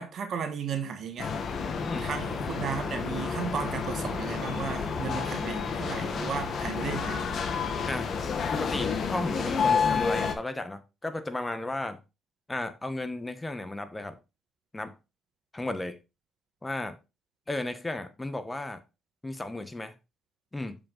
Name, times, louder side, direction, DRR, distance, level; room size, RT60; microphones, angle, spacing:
voice 1, 0.0-1.4 1.9-7.3, right 7 dB, 60° right, 1.3 m, -35 dB
sound 1, 1.2-10.3, left 5 dB, 55° left, 1.2 m, -30 dB
voice 2, 8.5-12.0 12.5-14.2 14.7-14.9 15.5-16.0 16.6-17.0 17.5-18.8 19.2-19.9 20.5-20.8, left 2 dB, 15° left, 1.1 m, -34 dB
6.9 x 5.2 x 3.8 m
cardioid pair, 90°, 0 cm